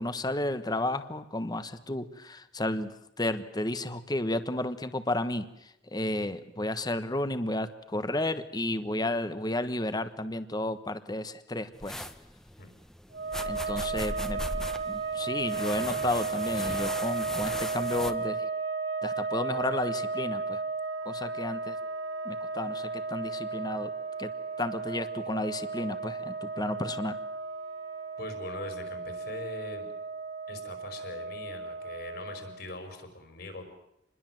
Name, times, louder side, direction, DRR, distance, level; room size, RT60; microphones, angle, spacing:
voice 1, 0.0-2.9 3.2-5.5 5.9-12.0 13.5-14.4 14.9-18.5 19.0-20.6 21.0-21.7 22.2-23.9 24.2-24.3 24.6-27.2, left 1 dB, 20° left, 11 dB, 1.3 m, -32 dB
sound 1, 11.7-18.1, equal, 5° left, 1.2 m, -39 dB
sound 2, 13.1-32.8, right 4 dB, 80° right, 3.7 m, -34 dB
voice 2, 28.2-29.9 30.5-33.6, left 2 dB, 60° left, 6 dB, 5.5 m, -41 dB
28.0 x 21.5 x 7.7 m, 0.81 s
head